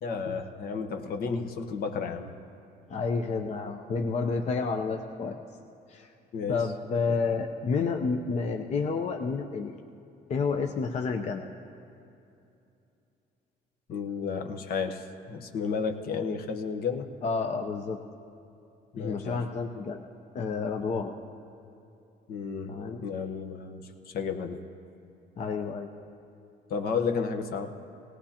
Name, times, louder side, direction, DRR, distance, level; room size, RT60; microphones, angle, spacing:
voice 1, 0.0-2.3 6.3-6.7 7.1-7.2 13.9-17.1 18.9-19.4 22.3-22.7 23.0-24.6 26.7-27.7, left 5 dB, 65° left, 6 dB, 1.0 m, -32 dB
voice 2, 2.9-5.4 5.9-6.1 6.5-9.8 10.3-11.4 17.2-18.0 19.0-20.0 20.3-21.1 22.7-23.0 25.4-25.9, left 4 dB, 40° left, 4 dB, 0.7 m, -30 dB
18.0 x 18.0 x 2.9 m, 2.7 s
cardioid pair, 110°, 17 cm